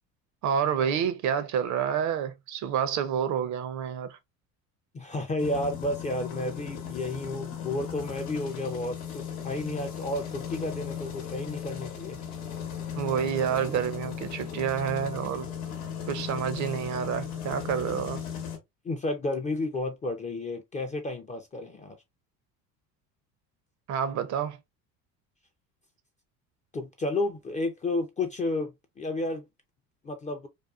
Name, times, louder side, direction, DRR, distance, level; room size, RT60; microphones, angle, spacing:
voice 1, 0.4-4.2 13.0-15.5 16.1-18.2 23.9-24.6, right 8 dB, 45° right, 0.5 m, -28 dB
voice 2, 4.9-12.2 18.8-22.0 26.7-28.7 29.0-29.4 30.0-30.5, left 2 dB, 20° left, 0.3 m, -31 dB
sound 1, 5.4-18.6, left 8 dB, 85° left, 0.9 m, -37 dB
2.5 x 2.3 x 2.2 m
hypercardioid pair, 75°, 42 cm